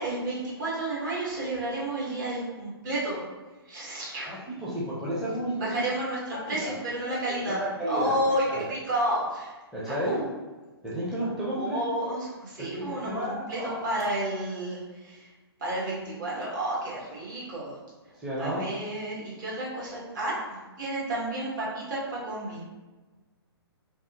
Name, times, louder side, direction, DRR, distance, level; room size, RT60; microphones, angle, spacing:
voice 1, 0.0-3.2 3.7-4.3 5.6-9.5 9.9-10.3 11.5-15.3 15.6-17.8 18.4-22.6, right 1 dB, 50° right, -6 dB, 1.4 m, -31 dB
voice 2, 4.3-5.8 6.5-6.7 7.5-8.2 8.5-8.6 9.7-10.2 10.8-11.8 12.7-13.8 18.2-18.7, equal, 5° right, -9 dB, 0.6 m, -32 dB
3.4 x 2.5 x 2.8 m, 1.2 s
figure-of-eight pair, 120°, 13 cm